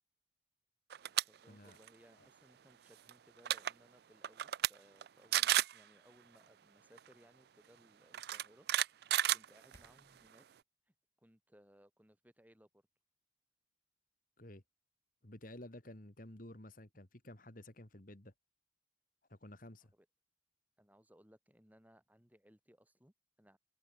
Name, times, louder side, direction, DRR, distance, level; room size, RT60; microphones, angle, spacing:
sound 1, 0.9-1.2 1.6-1.9 3.1-3.2 3.4-3.7 4.2-4.7 5.0-5.1 5.3-5.8 7.0-7.1 8.1-10.0, right 13 dB, 55° right, 0.3 m, -32 dB
voice 1, 1.2-8.7 9.0-10.5 10.9-12.8 19.8-20.1 20.8-23.6, equal, 10° right, 5.8 m, -65 dB
sound 2, 9.3-10.3, equal, 15° left, 6.7 m, -67 dB
voice 2, 15.2-18.3 19.3-19.9, left 1 dB, 45° left, 2.3 m, -52 dB
head